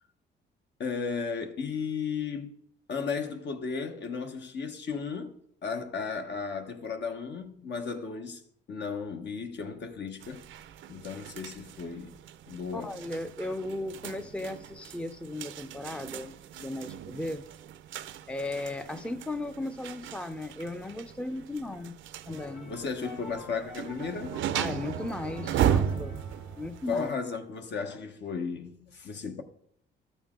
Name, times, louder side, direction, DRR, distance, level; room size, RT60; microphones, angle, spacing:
voice 1, 0.8-2.5 2.9-5.4 5.6-8.4 8.7-10.4 10.9-12.2 12.5-13.0 22.7-24.4 26.9-29.4, left 5 dB, 60° left, 1.2 m, -34 dB
sound 1, 10.2-27.1, right 9 dB, 75° right, 0.6 m, -36 dB
voice 2, 12.7-17.4 18.3-21.9 22.3-22.7 24.5-26.2 26.6-27.1, left 2 dB, 5° left, 0.5 m, -36 dB
sound 2, 22.3-28.0, left 1 dB, 80° left, 3.5 m, -48 dB
13.0 x 7.0 x 3.7 m
cardioid pair, 90°, 20 cm